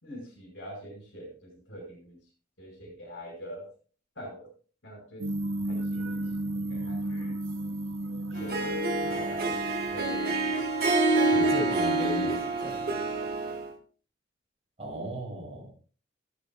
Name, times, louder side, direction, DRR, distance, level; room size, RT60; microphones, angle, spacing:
voice 1, 0.0-2.2 2.6-3.7 4.1-4.5 4.8-5.2 5.6-6.3 6.7-7.4 8.3-10.4 11.2-11.3 13.1-13.5, equal, 65° left, 0 dB, 5.1 m, -44 dB
sound 1, 5.2-10.5, right 1 dB, 80° right, 0.7 m, -34 dB
Harp, 8.3-13.7, right 2 dB, 50° right, 1.8 m, -27 dB
voice 2, 11.3-12.4 12.6-12.8 14.8-15.7, left 1 dB, 30° right, -2 dB, 5.6 m, -35 dB
14.5 x 12.0 x 2.3 m, 0.39 s
head